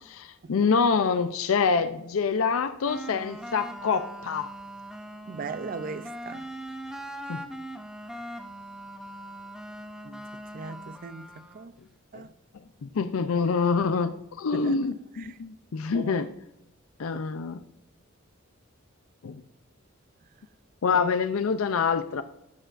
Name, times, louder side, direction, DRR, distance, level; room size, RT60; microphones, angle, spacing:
voice 1, 0.0-4.5 7.3-7.5 12.1-12.2 12.8-16.3 17.0-17.6 19.2-19.3 20.8-22.2, left 5 dB, 80° left, 0.5 m, -26 dB
sound 1, 2.8-11.7, right 1 dB, 5° right, 0.6 m, -41 dB
voice 2, 5.3-6.5 10.0-10.2 10.5-11.7 12.1-12.3 14.5-14.8 15.1-15.4 15.9-16.3 17.1-17.2 20.9-21.0, right 4 dB, 45° right, 0.4 m, -39 dB
12.5 x 8.9 x 2.5 m
head